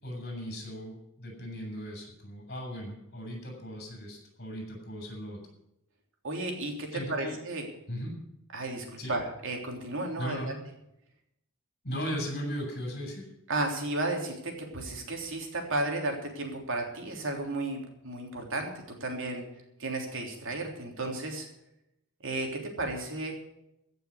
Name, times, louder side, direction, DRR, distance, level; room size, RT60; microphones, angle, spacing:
voice 1, 0.0-5.4 6.9-7.4 7.9-8.1 9.0-9.1 10.2-10.6 11.8-13.3, equal, 50° left, 1 dB, 6.8 m, -37 dB
voice 2, 6.2-7.7 8.5-10.5 13.5-18.7 19.0-19.4 19.8-21.5 22.2-23.4, right 2 dB, 65° right, 2 dB, 3.4 m, -33 dB
15.5 x 6.8 x 9.5 m, 0.83 s
head